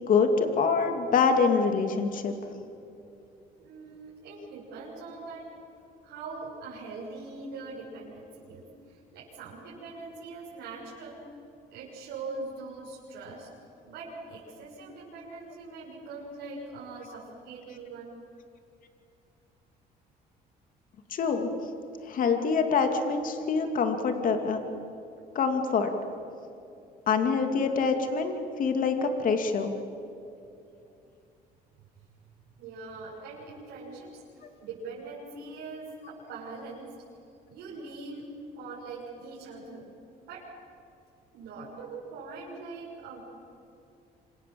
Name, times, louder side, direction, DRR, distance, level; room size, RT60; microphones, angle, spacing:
voice 1, 0.1-2.3 21.1-21.5 22.1-24.6 25.3-25.9 27.1-28.3 28.6-29.7, left 5 dB, 55° left, 5 dB, 2.8 m, -25 dB
voice 2, 3.6-5.5 6.0-11.2 11.7-13.5 13.8-18.1 32.6-34.2 34.6-37.0 37.5-39.9 40.2-40.5 41.3-43.2, right 3 dB, 85° right, -6 dB, 7.1 m, -42 dB
27.0 x 27.0 x 7.9 m, 2.6 s
cardioid pair, 110°, 17 cm